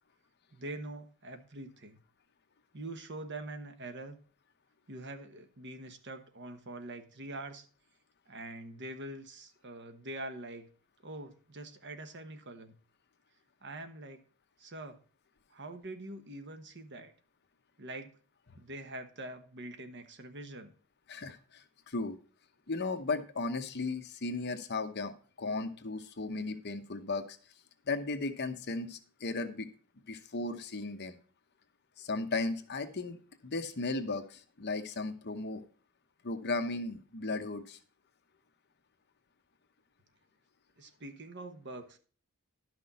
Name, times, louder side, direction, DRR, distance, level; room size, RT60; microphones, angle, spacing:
voice 1, 0.5-2.0 2.7-4.2 4.9-7.7 8.3-10.7 11.0-12.8 13.6-14.2 14.6-15.0 15.5-17.1 17.8-18.2 18.6-20.7 40.8-42.0, right 2 dB, 55° right, 8 dB, 1.1 m, -44 dB
voice 2, 21.1-22.2 22.7-25.1 25.4-27.4 27.9-29.7 30.1-31.2 32.0-33.2 33.4-35.6 36.2-37.8, left 3 dB, 50° left, 8 dB, 0.9 m, -35 dB
11.5 x 6.0 x 4.1 m, 0.40 s
head